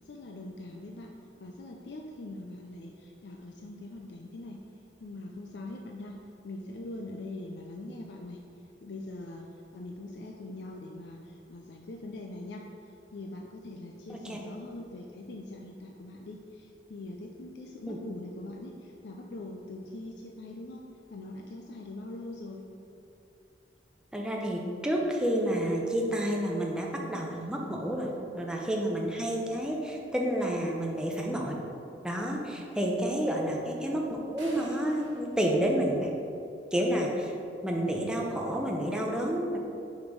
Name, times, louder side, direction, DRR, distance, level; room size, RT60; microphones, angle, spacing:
voice 1, 0.0-1.1 1.4-4.6 5.0-8.4 8.8-9.5 9.7-12.7 13.1-20.9 21.1-22.7 33.0-33.3, left 2 dB, 65° left, 1 dB, 0.5 m, -42 dB
voice 2, 24.1-31.6 32.0-36.1 36.7-37.3 37.6-39.6, right 1 dB, 5° right, -1 dB, 0.7 m, -30 dB
sound 1, 34.4-36.5, right 1 dB, 85° right, 1.5 m, -50 dB
5.1 x 5.0 x 5.3 m, 2.7 s
head